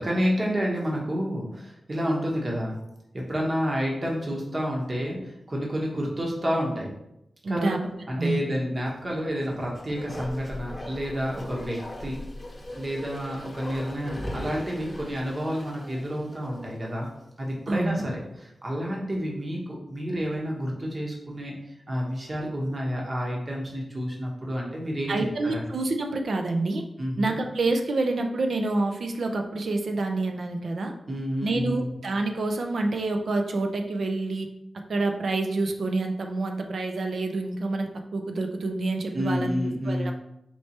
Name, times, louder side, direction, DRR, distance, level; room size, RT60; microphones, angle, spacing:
voice 1, 0.0-2.8 3.1-6.9 7.5-7.7 8.1-12.2 12.8-17.1 17.4-21.5 21.9-25.6 27.0-27.4 31.1-31.9 39.1-40.1, equal, 35° right, -2 dB, 1.0 m, -29 dB
voice 2, 7.4-7.8 8.2-8.4 17.7-18.1 25.1-26.8 27.2-30.9 31.4-34.5 34.9-39.5 39.9-40.1, right 2 dB, 70° right, 4 dB, 0.5 m, -27 dB
Bark, 9.3-16.9 17.2-17.3, left 1 dB, 25° left, 1.0 m, -39 dB
4.4 x 3.3 x 2.9 m, 0.83 s
wide cardioid pair, 95°, 0 cm